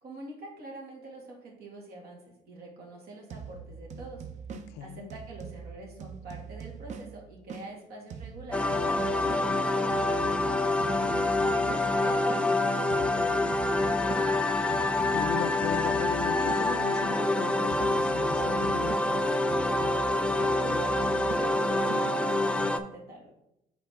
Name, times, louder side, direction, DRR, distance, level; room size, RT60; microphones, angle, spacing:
voice 1, 0.0-4.3 4.8-10.1 10.6-14.5 20.2-23.3, right 2 dB, 70° right, -1 dB, 1.9 m, -45 dB
sound 1, 3.3-7.7 8.1-12.5 12.9-17.3 17.7-22.1, right 6 dB, 45° right, 0.6 m, -43 dB
voice 2, 4.7-5.1 15.1-19.2, left 9 dB, 90° left, 14 dB, 0.4 m, -37 dB
sound 2, 8.5-22.8, left 2 dB, 5° left, 0.4 m, -26 dB
7.1 x 4.0 x 3.5 m, 0.84 s
cardioid pair, 110°, 17 cm